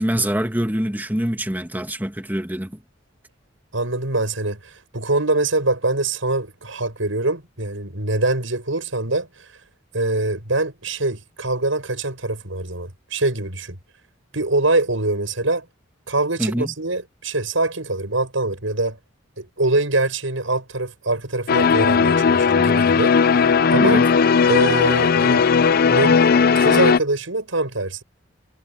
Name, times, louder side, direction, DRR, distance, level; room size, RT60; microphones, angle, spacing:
voice 1, 0.0-2.8 16.4-16.7 23.8-24.1, right 1 dB, 10° right, 1.7 m, -24 dB
voice 2, 3.7-9.3 9.9-13.8 14.3-15.6 16.1-19.0 19.4-23.1 23.7-24.0 24.5-25.4 25.9-26.2 26.5-28.0, right 2 dB, 80° right, 6.8 m, -23 dB
sound 1, 21.5-27.0, left 6 dB, 50° left, 0.4 m, -16 dB
head